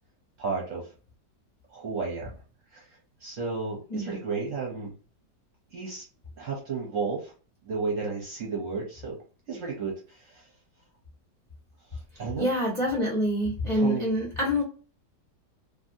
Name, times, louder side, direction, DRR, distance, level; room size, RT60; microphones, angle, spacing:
voice 1, 0.4-0.9 1.7-2.4 2.7-4.9 5.7-6.0 6.4-7.3 7.6-10.5 11.9-12.5 13.7-14.1, right 4 dB, 55° right, -1 dB, 1.0 m, -33 dB
voice 2, 12.4-14.6, equal, 25° left, -3 dB, 0.8 m, -26 dB
2.6 x 2.5 x 2.6 m, 0.36 s
omnidirectional pair, 1.9 m